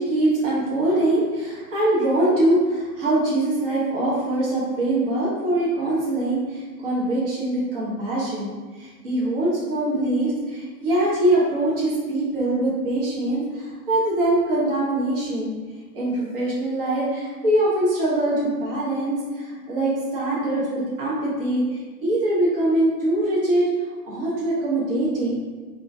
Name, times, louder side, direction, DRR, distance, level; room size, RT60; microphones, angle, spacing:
voice 1, 0.0-15.5 15.9-23.7 24.0-25.4, right 1 dB, 35° right, -7 dB, 1.1 m, -23 dB
5.3 x 2.7 x 3.4 m, 1.4 s
hypercardioid pair, 175°, 48 cm